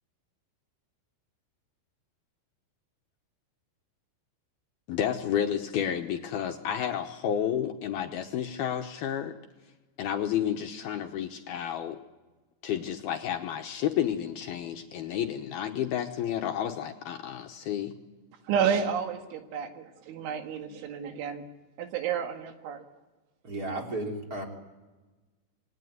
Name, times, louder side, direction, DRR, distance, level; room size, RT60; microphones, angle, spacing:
voice 1, 4.9-9.4 10.0-12.0 12.6-17.9, left 9 dB, 70° left, 4 dB, 2.6 m, -31 dB
voice 2, 18.5-21.5 21.8-22.8, right 7 dB, 85° right, 5 dB, 4.3 m, -30 dB
voice 3, 23.4-24.4, right 2 dB, 20° right, 1 dB, 3.5 m, -33 dB
27.5 x 21.0 x 9.5 m, 1.2 s
omnidirectional pair, 5.3 m